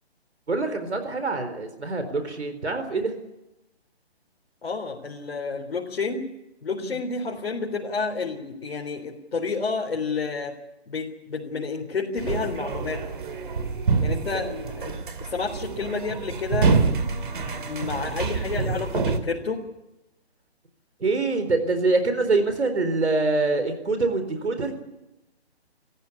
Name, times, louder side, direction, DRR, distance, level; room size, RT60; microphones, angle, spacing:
voice 1, 0.5-3.1 6.8-7.0 14.3-14.4 21.0-24.7, right 3 dB, 90° right, 8 dB, 4.2 m, -25 dB
voice 2, 4.6-6.2 6.6-10.5 10.9-13.0 14.0-16.7 17.7-19.6, left 4 dB, 65° left, -1 dB, 3.8 m, -30 dB
sound 1, 12.2-19.2, right 4 dB, 50° right, 2.7 m, -26 dB
27.0 x 14.5 x 8.5 m, 0.94 s
hypercardioid pair, 165°, 33 cm